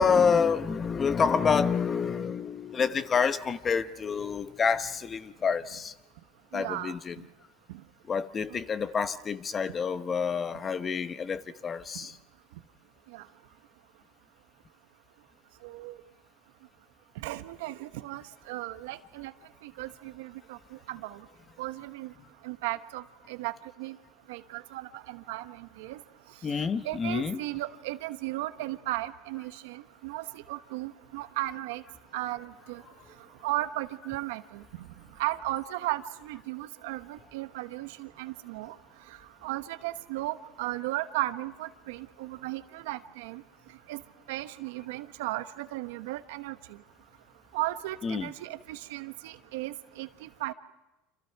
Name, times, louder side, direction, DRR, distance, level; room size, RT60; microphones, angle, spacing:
voice 1, 0.0-5.9 6.5-7.2 8.1-12.2 26.4-27.5 48.0-48.3, left 6 dB, 25° left, 1.0 m, -28 dB
voice 2, 6.5-6.9 13.1-13.2 15.6-15.9 17.2-19.3 19.6-20.6 20.9-21.2 21.6-22.1 22.4-23.0 23.3-23.5 23.8-23.9 24.3-26.0 26.8-31.8 32.1-32.8 33.4-34.4 35.2-38.7 39.4-43.4 43.9-44.0 44.3-46.5 47.5-50.5, right 17 dB, 80° right, 1.1 m, -35 dB
28.5 x 27.0 x 4.7 m
supercardioid pair, 120°, 0 cm